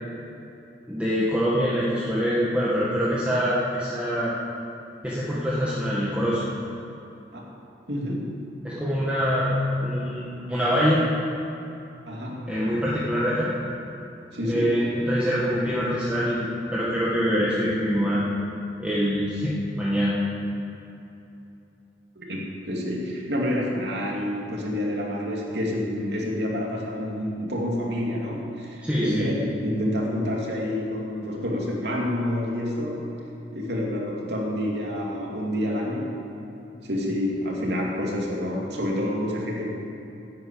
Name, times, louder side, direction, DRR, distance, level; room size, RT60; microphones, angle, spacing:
voice 1, 0.9-4.3 5.0-6.4 8.6-9.6 9.8-11.0 12.5-13.6 14.5-18.2 18.8-20.2 28.8-29.3, equal, 5° right, -8 dB, 1.7 m, -24 dB
voice 2, 7.9-8.4 12.1-12.5 14.3-14.8 22.2-33.1 33.5-36.3 36.8-39.7, left 1 dB, 75° right, -2 dB, 2.7 m, -28 dB
11.0 x 9.1 x 8.7 m, 2.8 s
head